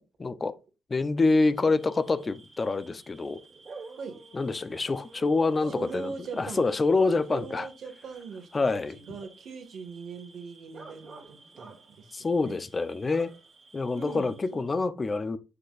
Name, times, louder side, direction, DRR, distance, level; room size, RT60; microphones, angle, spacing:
voice 1, 0.2-0.5 0.9-3.4 4.3-7.7 8.5-9.0 12.1-13.3 13.7-15.4, left 3 dB, 30° left, 0.7 m, -26 dB
Bark / Cricket, 1.5-14.7, right 4 dB, 45° right, 2.3 m, -50 dB
voice 2, 5.7-6.7 7.3-12.1 12.4-12.6 13.9-14.6, right 5 dB, 65° right, 1.8 m, -41 dB
7.5 x 6.6 x 2.5 m
cardioid pair, 90°, 0 cm